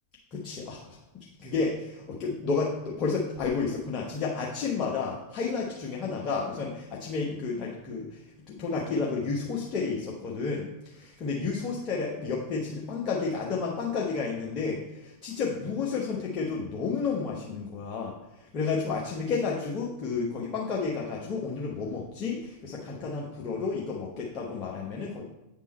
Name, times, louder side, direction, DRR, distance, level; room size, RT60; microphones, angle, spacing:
voice 1, 0.3-8.2 8.5-25.2, left 4 dB, 35° left, -3 dB, 1.0 m, -31 dB
8.3 x 3.7 x 4.3 m, 0.91 s
figure-of-eight pair, 90°, 0 cm